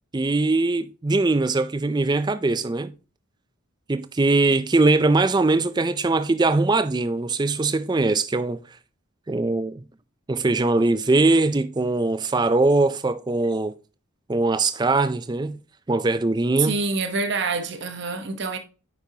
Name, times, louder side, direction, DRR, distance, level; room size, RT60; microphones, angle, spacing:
voice 1, 0.1-2.9 3.9-8.6 9.3-9.8 10.3-13.7 14.3-15.6 15.9-16.7, right 3 dB, 20° right, 0.3 m, -21 dB
voice 2, 16.6-18.6, right 4 dB, 50° right, 1.0 m, -26 dB
9.3 x 5.3 x 2.8 m
head